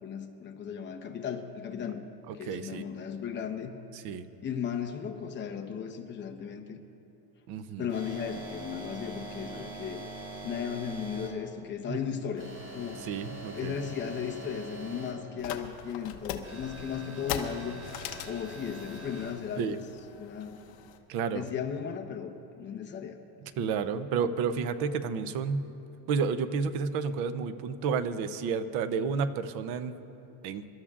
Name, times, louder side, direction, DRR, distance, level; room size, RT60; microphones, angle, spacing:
voice 1, 0.0-2.0 2.3-3.8 4.4-6.8 7.8-10.0 10.4-12.5 12.7-13.0 13.5-17.8 18.2-19.8 20.1-20.6 21.3-23.2, left 7 dB, 25° left, 3 dB, 0.9 m, -36 dB
voice 2, 2.3-2.8 3.9-4.3 7.5-7.9 11.9-12.2 13.0-13.8 19.6-19.8 21.1-21.5 23.6-25.7 26.1-30.0 30.4-30.6, right 5 dB, 50° right, 12 dB, 0.7 m, -31 dB
sound 1, 7.9-11.3 12.4-15.1 16.4-19.3, right 1 dB, 25° right, 3.6 m, -43 dB
sound 2, 15.4-21.0, left 9 dB, 50° left, 1.0 m, -40 dB
29.0 x 13.0 x 2.5 m, 2.8 s
cardioid pair, 170°, 47 cm